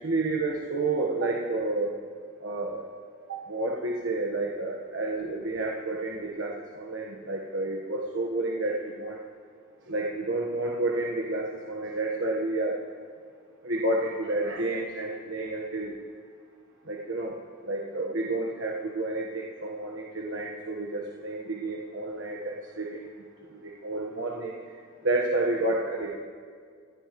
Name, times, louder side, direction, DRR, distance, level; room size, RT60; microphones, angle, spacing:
voice 1, 0.0-2.0 2.4-2.9 3.3-9.2 9.9-12.8 13.6-15.9 16.8-17.4 17.6-23.2 23.5-24.8 25.0-26.2, right 2 dB, 70° right, -1 dB, 1.3 m, -30 dB
29.0 x 15.5 x 3.1 m, 2.1 s
head